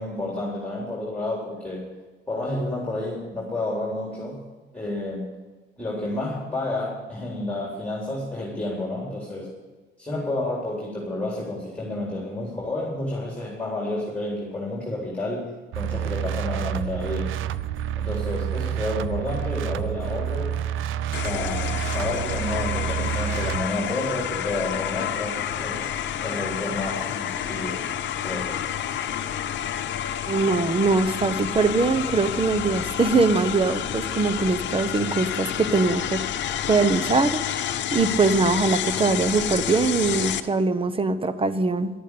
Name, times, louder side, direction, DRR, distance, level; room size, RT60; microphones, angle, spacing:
voice 1, 0.0-1.9 2.3-4.4 4.7-5.4 5.8-9.5 10.0-17.4 18.0-20.6 21.2-25.8 26.2-27.8 28.2-28.5, left 2 dB, 5° left, -3 dB, 3.9 m, -30 dB
sound 1, 15.7-23.7, right 10 dB, 80° right, 0.5 m, -28 dB
sound 2, 21.1-40.4, left 10 dB, 65° left, 0.9 m, -29 dB
voice 2, 30.3-36.2 36.7-37.4 37.9-41.9, right 3 dB, 25° right, 13 dB, 1.0 m, -22 dB
12.0 x 9.1 x 8.5 m, 1.3 s
cardioid pair, 90°, 20 cm